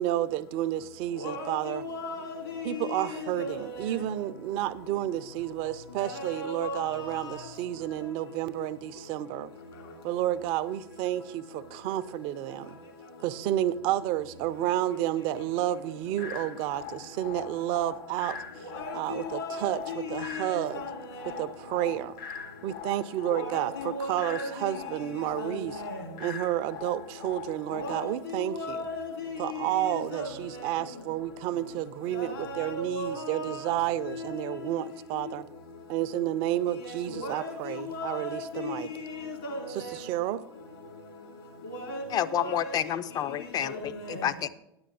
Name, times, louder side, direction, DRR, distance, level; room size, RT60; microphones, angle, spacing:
voice 1, 0.0-1.8 2.6-9.5 10.0-12.8 13.2-18.4 18.9-20.8 21.4-22.1 22.6-25.8 26.2-28.8 29.4-35.4 35.9-38.9 39.7-40.4, right 13 dB, 45° right, 0.5 m, -31 dB
voice 2, 1.2-3.8 6.0-7.4 18.7-21.3 23.3-24.7 25.4-26.0 27.7-30.6 32.1-33.8 34.0-34.6 35.2-35.3 36.8-40.0 41.6-42.0 42.3-43.0 43.6-44.3, left 2 dB, 75° left, 2.4 m, -37 dB
sound 1, 16.2-28.2, left 8 dB, 60° left, 1.0 m, -42 dB
voice 3, 42.1-44.5, left 10 dB, 30° left, 0.4 m, -29 dB
9.7 x 8.7 x 3.9 m
figure-of-eight pair, 80°, 12 cm